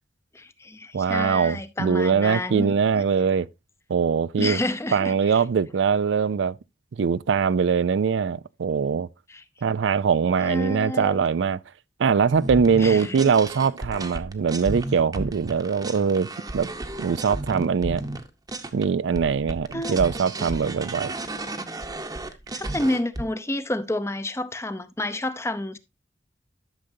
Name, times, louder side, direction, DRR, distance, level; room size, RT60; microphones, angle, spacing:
voice 1, 0.3-3.0 4.4-5.4 9.3-9.4 10.4-11.2 12.8-13.3 19.7-20.0 22.5-25.8, left 1 dB, 15° left, 0.7 m, -29 dB
voice 2, 0.9-3.5 3.9-4.6 4.9-6.6 7.0-9.1 9.6-11.6 12.0-16.3 16.5-16.7 17.0-18.1 18.7-21.1, right 6 dB, 85° right, 0.4 m, -22 dB
sound 1, 12.3-18.8 19.1-23.2, right 2 dB, 20° right, 0.9 m, -33 dB
12.0 x 6.5 x 2.7 m
head